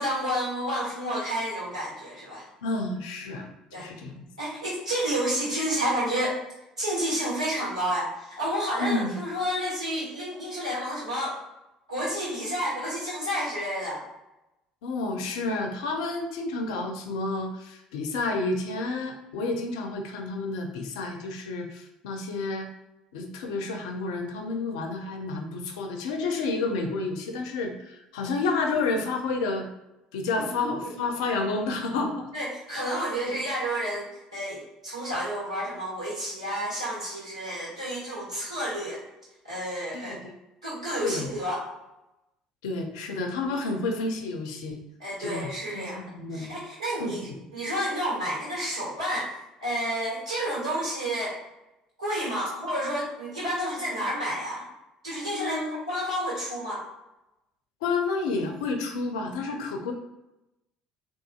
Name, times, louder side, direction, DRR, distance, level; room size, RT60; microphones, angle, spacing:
voice 1, 0.0-2.5 3.7-3.9 4.4-6.4 6.8-11.4 11.9-14.0 30.4-30.5 32.3-39.0 39.4-40.2 40.6-41.6 45.0-46.0 46.3-51.3 52.0-54.6 55.0-55.6 55.9-56.8, equal, 85° right, -7 dB, 1.3 m, -30 dB
voice 2, 2.6-4.2 8.8-9.1 14.8-22.7 23.1-29.7 30.1-32.3 33.2-33.3 39.9-40.3 41.0-41.3 42.6-44.8 45.2-46.5 47.0-47.3 55.3-55.8 57.8-59.9, left 3 dB, 70° left, 4 dB, 0.5 m, -30 dB
3.7 x 2.5 x 2.4 m, 0.92 s
figure-of-eight pair, 55°, 3 cm